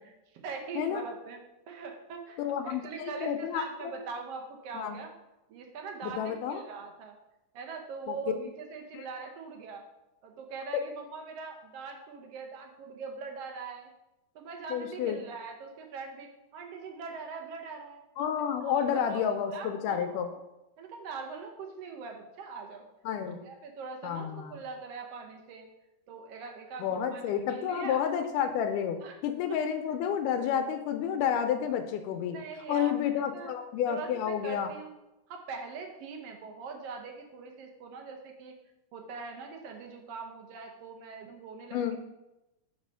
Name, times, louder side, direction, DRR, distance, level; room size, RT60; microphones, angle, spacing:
voice 1, 0.0-1.4 1.7-5.1 5.5-7.2 7.5-9.8 10.2-13.9 14.3-18.0 18.8-19.2 19.5-20.2 20.8-22.9 23.2-25.7 26.1-28.0 29.0-29.1 32.2-33.0 33.3-33.6 33.9-34.9 35.3-38.6 38.9-41.8, right 4 dB, 80° right, 3 dB, 1.4 m, -42 dB
voice 2, 2.4-4.0 4.7-5.0 6.0-6.6 8.1-8.3 8.9-9.0 10.7-10.8 14.7-15.2 18.2-20.3 23.1-23.4 24.0-24.6 26.8-32.4 32.7-34.7 41.7-42.0, left 8 dB, 85° left, 7 dB, 2.1 m, -30 dB
6.7 x 4.0 x 5.5 m, 0.95 s
omnidirectional pair, 3.6 m